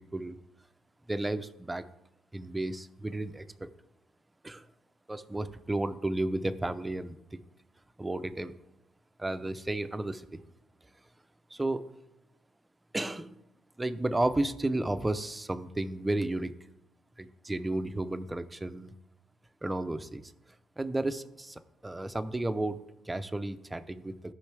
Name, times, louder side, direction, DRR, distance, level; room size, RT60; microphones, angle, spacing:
voice 1, 1.1-1.9 2.3-3.7 4.4-4.7 5.1-7.4 8.0-8.5 9.2-10.4 11.5-11.8 12.9-13.4 13.8-16.5 17.2-18.9 19.6-20.2 20.8-24.1, right 2 dB, 15° right, 10 dB, 0.7 m, -33 dB
15.5 x 5.5 x 3.4 m, 0.89 s
cardioid pair, 90°, 0 cm